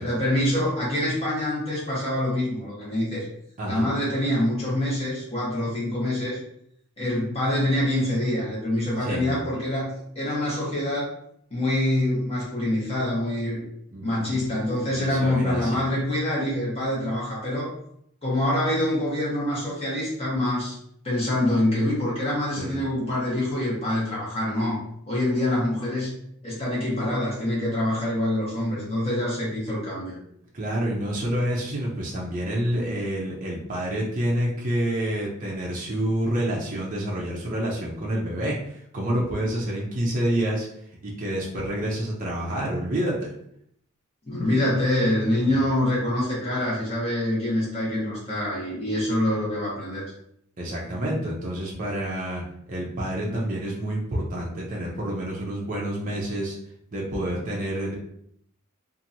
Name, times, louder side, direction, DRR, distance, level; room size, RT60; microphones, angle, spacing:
voice 1, 0.0-3.2 3.6-6.4 7.0-11.1 11.5-13.6 14.0-17.7 18.2-20.8 21.0-24.8 25.1-26.2 26.4-30.1 44.3-50.0, left 1 dB, 25° left, -7 dB, 1.2 m, -25 dB
voice 2, 9.1-9.4 13.9-14.4 14.9-15.8 22.6-22.8 30.5-40.7 41.0-43.3 45.5-45.6 50.6-52.4 52.7-56.6 56.9-57.9, right 1 dB, 35° right, -4 dB, 0.5 m, -28 dB
2.8 x 2.5 x 2.6 m, 0.71 s
head